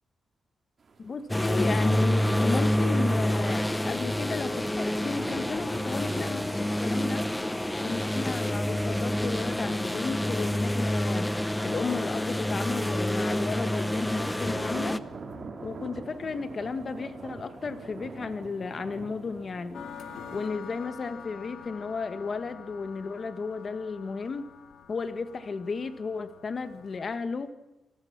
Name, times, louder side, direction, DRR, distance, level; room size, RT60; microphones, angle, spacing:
sound 1, 0.8-20.4, right 4 dB, 40° right, 2.9 m, -46 dB
voice 1, 1.0-7.3 7.8-11.3 11.6-15.0 15.6-19.8 20.3-24.5 24.9-27.5, left 4 dB, 35° left, 12 dB, 1.4 m, -34 dB
sound 2, 1.3-15.0, equal, 5° left, 0.7 m, -27 dB
sound 3, 19.7-27.2, left 7 dB, 70° left, 2.4 m, -46 dB
27.5 x 19.0 x 5.9 m, 1.0 s
wide cardioid pair, 145°, 0 cm